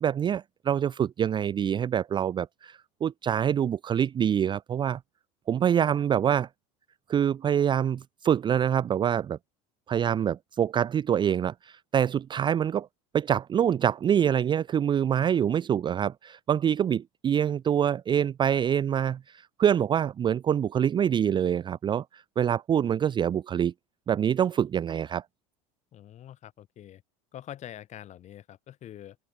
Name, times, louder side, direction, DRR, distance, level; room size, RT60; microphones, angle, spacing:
voice 1, 0.0-5.0 5.5-6.5 7.1-9.4 9.9-12.9 13.1-23.7 24.1-25.2, right 9 dB, 30° right, 0.5 m, -25 dB
voice 2, 25.9-27.0 27.3-29.2, left 11 dB, 45° left, 3.7 m, -45 dB
open air
supercardioid pair, 105°, 17 cm